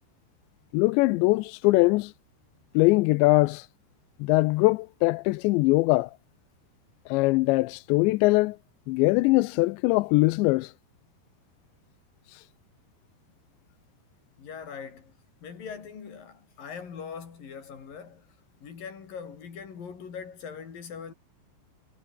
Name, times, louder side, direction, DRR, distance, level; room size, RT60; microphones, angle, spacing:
voice 1, 0.7-2.1 2.7-3.7 4.2-6.1 7.1-8.6 8.9-10.7 12.3-12.4, left 22 dB, 85° left, 2.8 m, -22 dB
voice 2, 14.4-15.2 15.4-21.1, left 6 dB, 50° left, 5.2 m, -41 dB
omnidirectional pair, 5.3 m